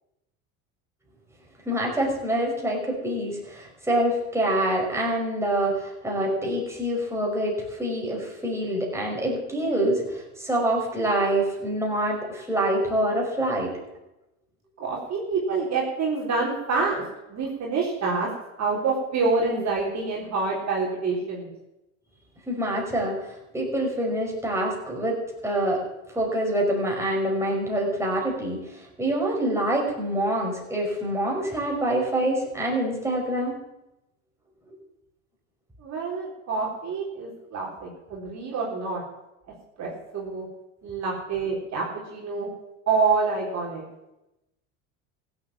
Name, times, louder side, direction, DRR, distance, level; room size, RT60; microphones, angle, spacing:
voice 1, 1.7-13.7 22.5-23.2 23.5-25.2 25.4-25.8 26.1-33.6, right 1 dB, 5° right, -2 dB, 5.5 m, -26 dB
voice 2, 14.8-17.0 17.3-18.3 18.6-21.5 35.8-39.0 39.8-40.5 40.8-42.5 42.9-43.8, right 4 dB, 40° right, -3 dB, 3.9 m, -27 dB
15.5 x 7.9 x 7.4 m, 0.92 s
hypercardioid pair, 85°, 40 cm